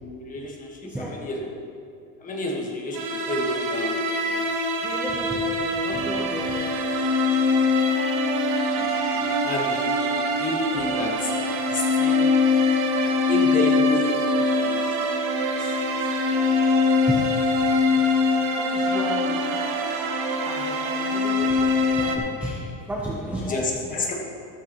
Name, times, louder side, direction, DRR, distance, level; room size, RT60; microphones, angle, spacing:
voice 1, 0.0-1.5 2.2-4.4 8.6-11.3 11.7-12.3 13.0-14.9 15.6-16.1 23.4-24.1, left 2 dB, 20° left, -1 dB, 1.5 m, -30 dB
voice 2, 0.8-1.3 4.8-6.8 7.1-7.2 17.0-17.4 18.0-18.2 18.6-19.6 20.4-24.1, right 1 dB, 5° right, -4 dB, 0.7 m, -34 dB
sound 1, 2.9-22.2, left 2 dB, 45° right, 1.2 m, -23 dB
13.5 x 13.0 x 3.0 m, 2.7 s
cardioid pair, 170°, 41 cm